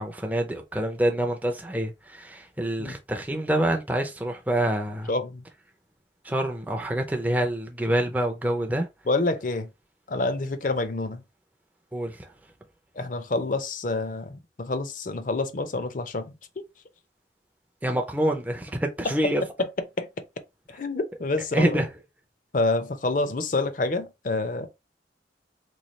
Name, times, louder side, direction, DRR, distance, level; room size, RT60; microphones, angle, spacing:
voice 1, 0.0-5.1 6.2-8.9 11.9-12.3 17.8-19.4 21.5-21.9, right 1 dB, 10° right, 0.4 m, -26 dB
voice 2, 5.1-5.4 9.1-9.7 10.1-11.2 13.0-16.6 19.0-19.3 19.6-19.7 20.0-20.1 20.7-21.8 22.5-24.7, left 2 dB, 45° left, 0.5 m, -27 dB
3.1 x 2.3 x 4.0 m
head